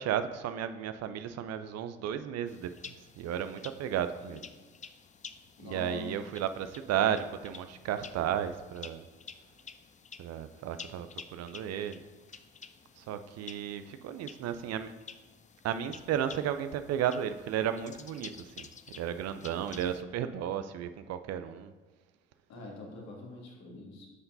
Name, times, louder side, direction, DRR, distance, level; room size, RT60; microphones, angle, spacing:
voice 1, 0.0-4.4 5.6-9.0 10.2-12.0 13.0-14.9 15.6-18.7 19.0-21.7, right 9 dB, 55° right, 11 dB, 0.5 m, -34 dB
sound 1, 2.5-20.0, left 6 dB, 25° left, 0.5 m, -51 dB
voice 2, 5.6-6.1 22.5-24.1, left 2 dB, 60° left, -1 dB, 1.9 m, -44 dB
9.2 x 5.8 x 2.7 m, 1.3 s
hypercardioid pair, 50°, 31 cm